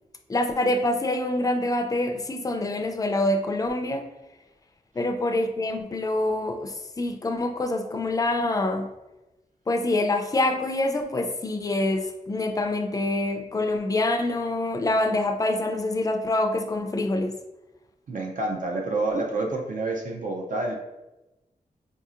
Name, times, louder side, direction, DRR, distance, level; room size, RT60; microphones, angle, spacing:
voice 1, 0.3-4.0 5.0-8.9 9.7-17.3, left 2 dB, 25° left, 5 dB, 0.3 m, -26 dB
voice 2, 18.1-20.8, right 2 dB, 60° right, 1 dB, 0.5 m, -28 dB
4.8 x 2.7 x 2.4 m, 1.0 s
wide cardioid pair, 125°, 15 cm